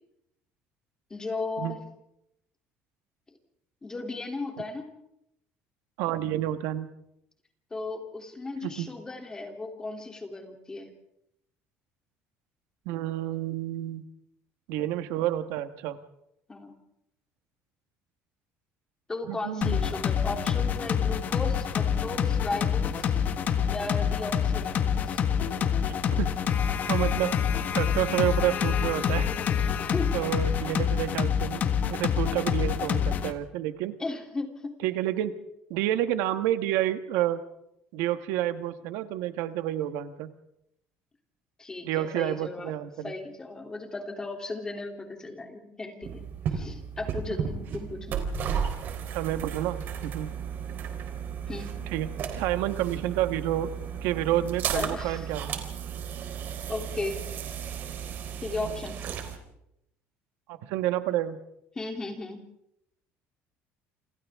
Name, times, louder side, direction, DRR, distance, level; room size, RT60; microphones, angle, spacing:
voice 1, 1.1-1.8 3.8-4.9 7.7-10.9 16.5-16.7 19.1-23.2 23.7-25.2 29.6-30.1 34.0-34.8 41.6-42.7 43.0-46.2 46.5-48.2 51.5-51.7 54.7-55.3 56.7-57.2 58.4-59.0 61.7-62.4, left 3 dB, 15° left, 3 dB, 3.1 m, -36 dB
voice 2, 6.0-6.9 8.6-8.9 12.8-14.0 14.7-16.0 19.3-19.8 25.8-26.4 26.9-27.4 27.7-29.3 30.1-34.0 34.8-35.3 35.7-37.4 37.9-40.3 41.8-43.1 49.1-50.3 51.9-53.7 54.0-55.5 60.5-61.4, right 13 dB, 90° right, 9 dB, 1.5 m, -29 dB
sound 1, 19.6-33.3, left 8 dB, 40° left, 1.6 m, -27 dB
sound 2, 46.0-59.4, right 7 dB, 50° right, 4.0 m, -34 dB
28.5 x 27.0 x 3.7 m, 0.80 s
cardioid pair, 150°, 4 cm